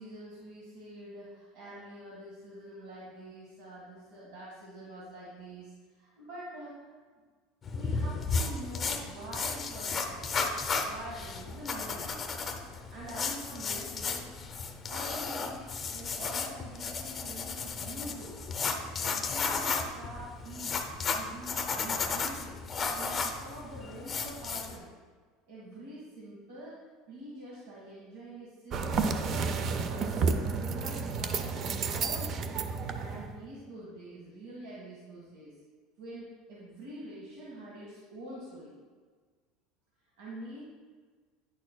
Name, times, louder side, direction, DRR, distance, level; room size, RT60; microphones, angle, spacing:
voice 1, 0.0-7.0 7.7-10.3 10.8-12.2 12.9-14.3 14.9-18.4 19.0-20.8 21.1-22.6 22.9-24.9 25.5-26.7 27.1-32.4 32.9-35.5 36.0-38.7 40.2-40.6, right 1 dB, 85° right, -6 dB, 1.7 m, -45 dB
sound 1, 7.6-24.8, left 4 dB, 20° left, 0.6 m, -34 dB
sound 2, 28.7-33.4, right 4 dB, 35° right, 0.4 m, -31 dB
9.6 x 6.4 x 2.3 m, 1.5 s
cardioid pair, 160°, 0 cm